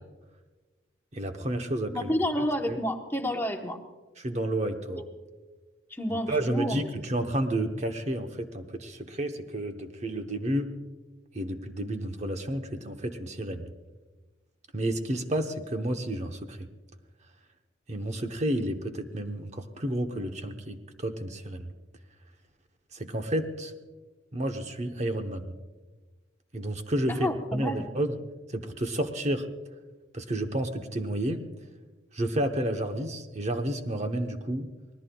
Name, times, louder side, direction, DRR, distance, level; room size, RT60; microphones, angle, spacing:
voice 1, 1.1-2.1 2.7-2.8 4.2-5.0 6.3-10.7 11.3-13.7 14.7-16.7 17.9-21.6 22.9-23.7 24.3-25.5 26.5-28.1 28.5-29.5 30.1-31.4 32.1-34.7, right 1 dB, 35° right, 5 dB, 0.9 m, -31 dB
voice 2, 1.9-3.8 4.9-5.0 5.9-6.9 27.1-27.8, equal, 10° left, 3 dB, 1.0 m, -30 dB
25.5 x 19.0 x 2.3 m, 1.2 s
head